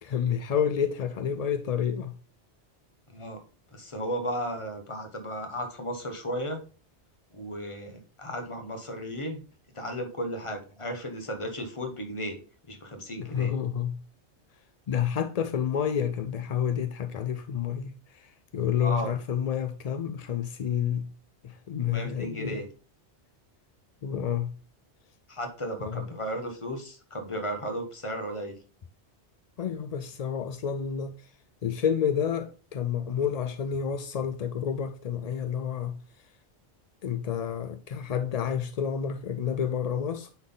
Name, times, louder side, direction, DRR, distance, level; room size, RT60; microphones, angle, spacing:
voice 1, 0.0-2.1 13.2-14.0 14.9-21.1 21.4-22.6 24.0-24.5 25.8-26.0 29.6-31.3 31.6-36.0 37.0-40.3, left 8 dB, 55° left, 0.4 m, -29 dB
voice 2, 3.1-3.4 3.7-6.6 7.3-9.4 9.7-12.4 12.7-13.5 18.8-19.1 21.9-22.6 25.3-28.6, equal, 30° left, 1.2 m, -34 dB
9.6 x 4.0 x 3.9 m
omnidirectional pair, 1.1 m